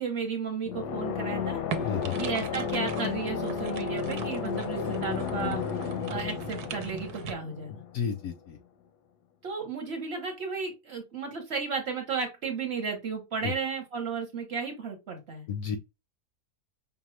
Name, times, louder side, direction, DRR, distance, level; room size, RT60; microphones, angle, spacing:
voice 1, 0.0-1.6 2.2-7.8 9.4-15.5, right 5 dB, 45° right, 1.0 m, -34 dB
sound 1, 0.7-8.3, left 7 dB, 85° left, 1.2 m, -33 dB
sound 2, 1.7-7.3, right 7 dB, 80° right, 1.1 m, -40 dB
voice 2, 1.8-2.2 7.9-8.6 13.4-13.5 15.5-15.8, left 7 dB, 70° left, 0.8 m, -31 dB
5.3 x 2.2 x 3.1 m
omnidirectional pair, 1.7 m